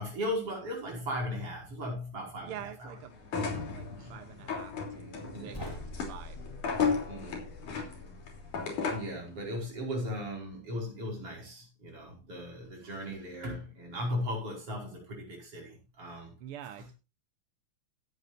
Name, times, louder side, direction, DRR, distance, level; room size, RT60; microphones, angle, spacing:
voice 1, 0.0-3.0 3.9-4.2 5.1-5.6 7.1-7.5 8.9-16.4 16.7-16.9, left 1 dB, 50° right, 6.1 m, -37 dB
voice 2, 2.4-3.2 3.5-5.6 5.9-6.4 16.4-16.9, right 10 dB, 65° right, 1.4 m, -46 dB
sound 1, 3.2-9.2, left 5 dB, 85° left, 4.7 m, -34 dB
sound 2, 5.5-8.6, left 1 dB, 10° left, 2.9 m, -45 dB
17.0 x 9.6 x 2.6 m
omnidirectional pair, 3.4 m